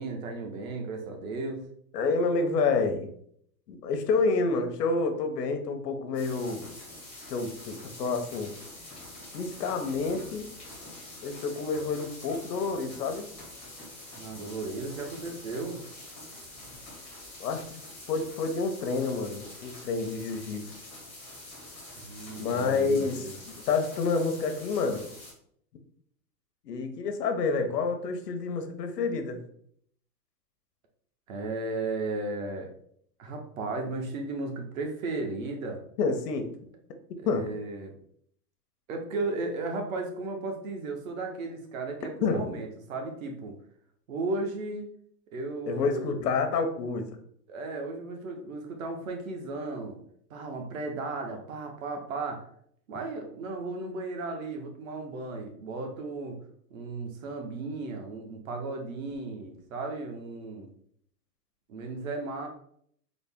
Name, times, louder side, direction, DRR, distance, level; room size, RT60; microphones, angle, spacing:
voice 1, 0.0-1.7 14.2-15.8 22.0-23.3 31.3-32.7 33.2-35.8 37.2-38.0 38.9-43.5 44.1-44.9 45.3-46.2 47.5-50.0 50.3-52.5 52.9-56.4 56.7-60.7 61.7-62.5, right 3 dB, 55° right, 3 dB, 0.9 m, -35 dB
voice 2, 1.9-3.1 3.7-6.7 7.3-8.5 9.3-10.5 11.2-13.3 17.4-17.6 18.1-20.7 22.4-23.2 23.7-25.1 26.6-29.4 36.0-36.5 37.2-37.4 42.2-42.5 45.7-47.0, left 4 dB, 70° left, 6 dB, 0.8 m, -28 dB
sound 1, 6.1-25.3, left 1 dB, 5° left, 0.6 m, -46 dB
4.0 x 2.0 x 3.5 m, 0.65 s
hypercardioid pair, 155°, 49 cm